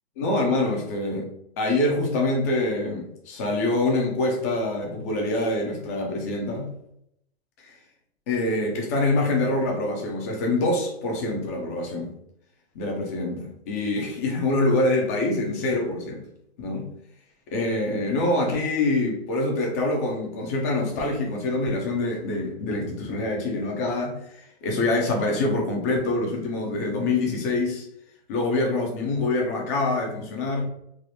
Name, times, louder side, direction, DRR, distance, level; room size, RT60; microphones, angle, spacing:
voice 1, 0.2-1.3 1.6-6.7 7.6-7.7 8.3-12.1 12.7-16.2 16.6-16.9 17.5-27.9 28.3-30.6, left 2 dB, 15° left, 0 dB, 0.3 m, -25 dB
3.3 x 2.0 x 2.6 m, 0.75 s
hypercardioid pair, 125°, 33 cm